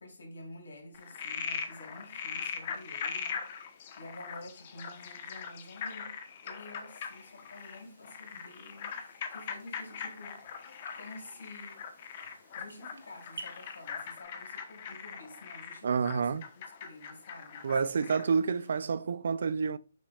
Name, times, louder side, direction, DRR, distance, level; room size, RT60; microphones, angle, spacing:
voice 1, 0.0-6.1 6.4-10.4 10.9-11.8 12.5-16.4 16.8-18.2 18.7-19.0, left 2 dB, 80° left, 3.6 m, -49 dB
Frog, 0.9-18.4, left 6 dB, 40° left, 1.0 m, -41 dB
sound 1, 6.9-14.2, right 3 dB, 90° right, 1.7 m, -54 dB
voice 2, 15.8-16.4 17.6-19.8, right 5 dB, 65° right, 0.5 m, -29 dB
7.8 x 6.3 x 2.4 m
hypercardioid pair, 155°, 0 cm